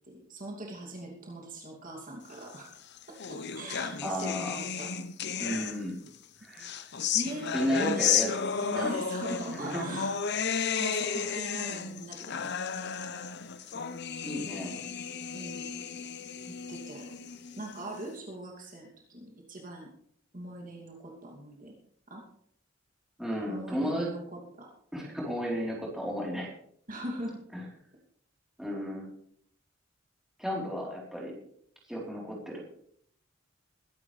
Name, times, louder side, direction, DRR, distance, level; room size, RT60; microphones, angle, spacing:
voice 1, 0.1-2.7 3.3-4.9 6.6-6.7 7.1-8.1 8.6-10.1 10.5-12.9 15.3-15.7 16.5-17.3 17.6-19.9 20.3-21.7 22.1-22.2 23.5-24.7 25.1-25.3 26.9-27.4, right 1 dB, 45° right, -1 dB, 2.7 m, -41 dB
sound 1, 2.7-6.1 6.6-18.0, left 7 dB, 60° left, 0.9 m, -33 dB
voice 2, 4.0-4.6 5.4-6.0 6.4-6.7 7.5-9.0 9.5-10.0 14.2-14.7 23.2-24.1 24.9-26.5 27.5-27.6 28.6-29.1 30.4-31.3 31.9-32.6, equal, ahead, -4 dB, 3.9 m, -33 dB
21.5 x 11.0 x 3.4 m, 0.65 s
head